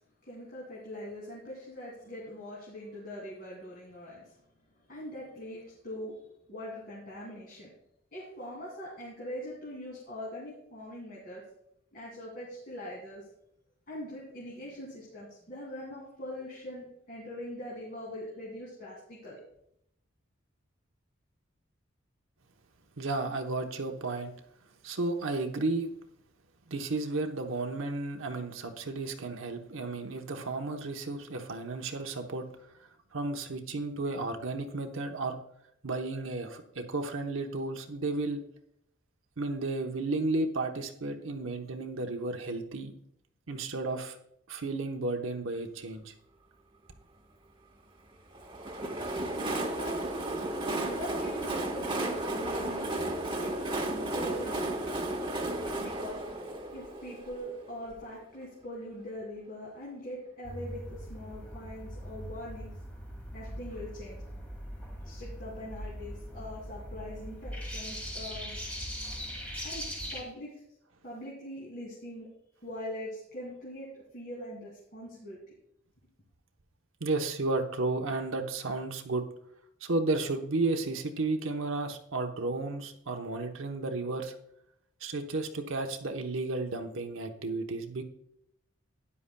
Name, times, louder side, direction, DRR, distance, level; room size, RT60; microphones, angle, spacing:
voice 1, 0.2-4.4 4.8-6.2 6.5-7.7 8.1-11.4 11.9-13.3 13.9-19.4 49.3-50.1 50.7-55.1 55.8-56.2 56.7-62.8 63.3-64.2 65.0-68.5 69.6-70.6 71.0-72.3 72.6-75.4, left 1 dB, 45° left, -5 dB, 2.7 m, -42 dB
voice 2, 23.0-24.3 24.8-25.9 26.7-32.5 33.1-35.4 35.8-38.4 39.4-42.9 43.5-44.2 44.5-46.1 77.0-79.2 79.8-84.3 85.0-88.0, right 2 dB, 80° right, 4 dB, 1.0 m, -33 dB
Train, 48.3-58.0, right 1 dB, 25° right, 1.2 m, -34 dB
sound 1, 60.4-70.2, equal, 5° left, 1.8 m, -40 dB
12.5 x 9.8 x 2.3 m, 0.73 s
head